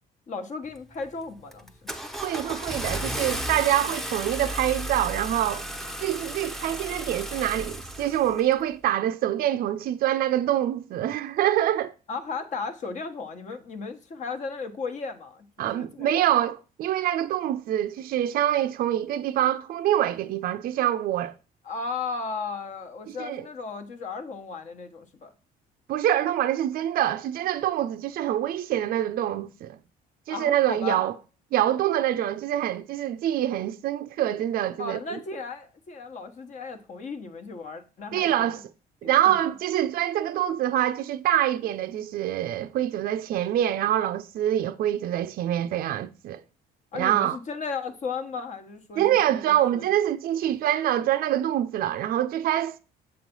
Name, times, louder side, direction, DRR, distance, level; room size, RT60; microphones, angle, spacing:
voice 1, 0.3-1.7 12.1-16.3 21.6-25.3 30.3-31.0 34.8-38.6 39.0-39.5 46.9-50.0, left 4 dB, 45° left, 1.1 m, -35 dB
Car / Engine starting, 0.7-1.1 1.5-8.5, right 1 dB, ahead, 0.7 m, -34 dB
voice 2, 2.2-5.6 6.0-11.9 15.6-21.3 23.2-23.4 25.9-29.8 30.3-31.1 31.5-35.0 38.1-38.6 39.0-46.4 46.9-47.4 49.0-52.8, right 12 dB, 60° right, 0.4 m, -25 dB
7.1 x 3.1 x 5.3 m
cardioid pair, 110°, 17 cm